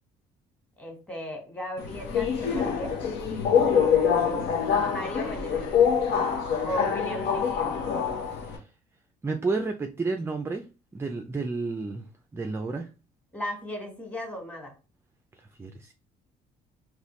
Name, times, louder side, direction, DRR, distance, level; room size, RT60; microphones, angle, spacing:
voice 1, 0.8-2.9 4.9-5.9 6.6-7.7 13.3-14.7, left 1 dB, 10° left, 2 dB, 1.5 m, -36 dB
Subway metro underground, 1.8-8.6, left 7 dB, 75° left, 1.0 m, -25 dB
voice 2, 9.2-10.6 10.9-12.0 12.3-12.9 15.6-15.9, right 3 dB, 15° right, 6 dB, 0.4 m, -31 dB
4.0 x 3.0 x 3.1 m, 0.31 s
cardioid pair, 110°, 17 cm